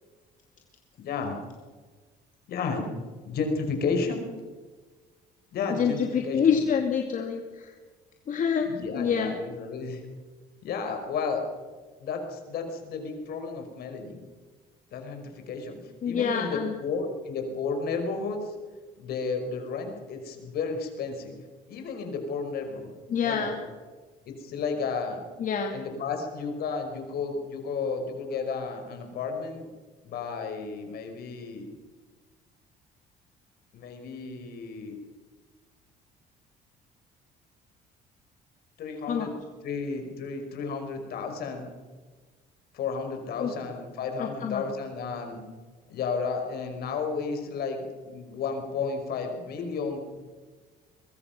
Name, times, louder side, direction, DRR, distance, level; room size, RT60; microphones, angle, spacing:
voice 1, 1.0-1.4 2.5-2.9 3.2-4.2 5.5-6.4 8.7-10.0 10.6-11.4 12.0-14.2 14.9-15.8 16.0-18.5 19.0-21.3 21.7-22.9 23.2-23.6 24.3-25.2 25.7-29.7 30.0-31.7 33.7-35.0 38.8-39.3 39.6-41.7 42.7-45.4 45.9-50.0, left 4 dB, 65° left, 5 dB, 5.3 m, -32 dB
voice 2, 5.7-7.7 8.3-8.7 8.9-9.4 16.0-16.7 23.1-23.6 25.4-25.7 39.1-39.3 43.4-43.5 44.2-44.6, left 7 dB, 50° left, 3 dB, 2.5 m, -26 dB
23.0 x 22.5 x 6.1 m, 1.4 s
cardioid pair, 110°, 17 cm